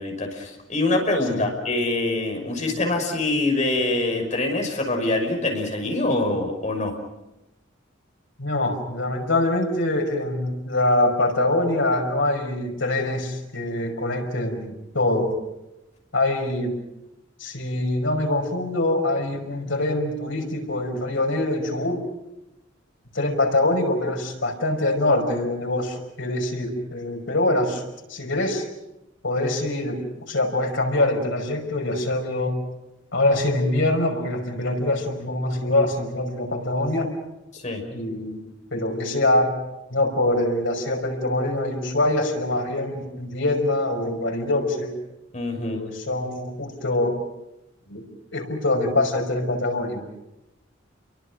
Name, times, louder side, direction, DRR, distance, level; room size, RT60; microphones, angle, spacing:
voice 1, 0.0-6.9 37.5-37.8 45.3-45.8, left 2 dB, 40° left, 2 dB, 5.9 m, -24 dB
voice 2, 8.4-15.4 16.1-16.8 17.4-22.0 23.1-27.8 28.1-28.6 29.2-32.6 33.1-37.1 37.9-38.4 38.7-39.5 39.9-44.9 45.6-47.2 47.9-48.0 48.3-50.0, left 1 dB, 85° left, 2 dB, 5.4 m, -24 dB
30.0 x 23.0 x 6.3 m, 0.93 s
head